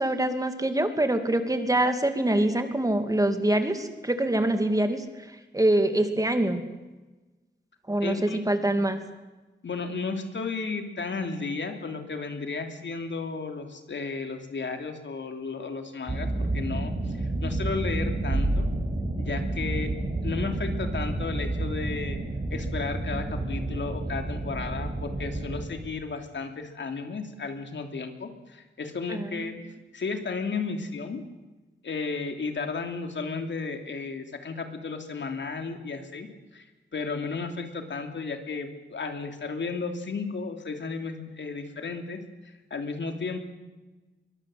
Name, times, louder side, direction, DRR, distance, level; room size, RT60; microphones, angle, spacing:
voice 1, 0.0-5.0 5.5-6.6 7.9-8.2 8.5-9.0 29.1-29.5, right 1 dB, 20° right, 7 dB, 2.4 m, -24 dB
voice 2, 8.0-8.4 9.6-18.7 19.2-19.9 20.2-22.2 22.5-29.6 29.9-31.2 31.8-36.3 36.5-36.7 36.9-42.2 42.4-43.4, left 4 dB, 85° left, 5 dB, 2.9 m, -33 dB
sound 1, 16.1-25.6, right 2 dB, 40° right, 5.6 m, -30 dB
23.0 x 23.0 x 7.8 m, 1.2 s
wide cardioid pair, 120°, 18 cm